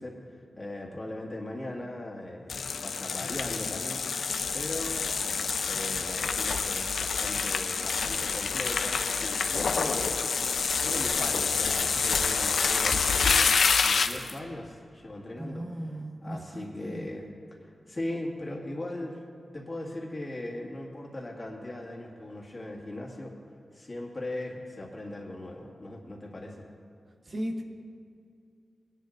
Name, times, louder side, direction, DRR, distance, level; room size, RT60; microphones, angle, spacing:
voice 1, 0.0-4.0 4.5-10.2 10.8-15.7 16.2-17.3 17.6-19.2 19.5-23.4 23.7-26.7, left 1 dB, 25° left, -2 dB, 1.9 m, -39 dB
sound 1, 2.5-14.3, left 5 dB, 90° left, 0.6 m, -27 dB
voice 2, 15.4-17.1 27.2-27.6, equal, 40° right, 2 dB, 0.9 m, -37 dB
21.5 x 11.0 x 2.6 m, 2.4 s
wide cardioid pair, 150°, 0 cm